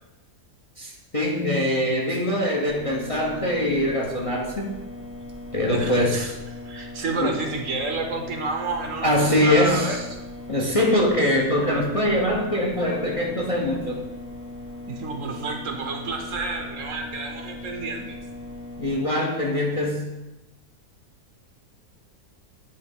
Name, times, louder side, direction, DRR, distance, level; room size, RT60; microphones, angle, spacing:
voice 1, 0.8-4.7 5.5-6.3 7.2-7.4 9.0-10.0 10.5-14.0 18.8-20.1, left 1 dB, 25° left, -1 dB, 0.8 m, -23 dB
sound 1, 2.7-19.0, left 1 dB, 90° left, 3.1 m, -39 dB
voice 2, 5.7-6.3 6.7-10.0 14.9-18.2, right 3 dB, 60° right, 3 dB, 1.2 m, -30 dB
8.6 x 3.5 x 5.3 m, 1.0 s
omnidirectional pair, 1.6 m